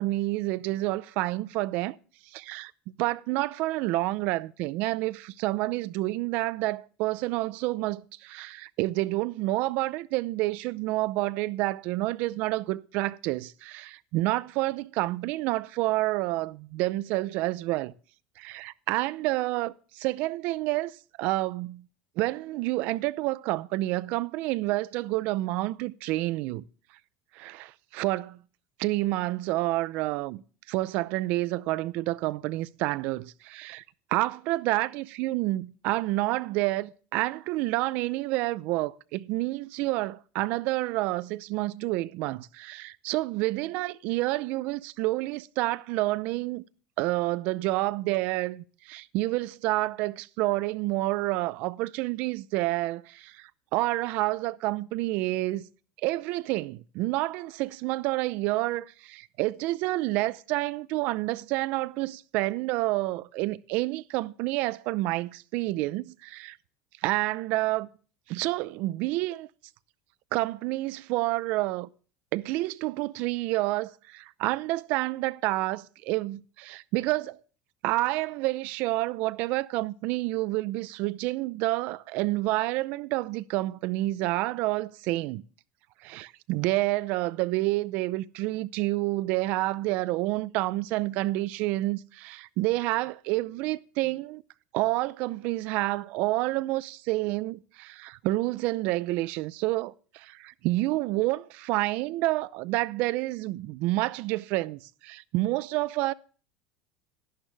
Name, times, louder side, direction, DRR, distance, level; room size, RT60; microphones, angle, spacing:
voice 1, 0.0-2.0 2.3-2.7 3.0-17.9 18.4-21.8 22.2-26.6 27.3-28.4 28.8-30.4 30.7-33.8 34.1-46.6 47.0-55.6 56.0-66.6 67.0-67.9 68.3-69.5 70.3-71.9 72.3-77.4 77.8-85.4 86.0-94.4 94.7-106.1, right 19 dB, 50° right, 0.6 m, -29 dB
12.0 x 11.0 x 3.4 m
cardioid pair, 165°, 3 cm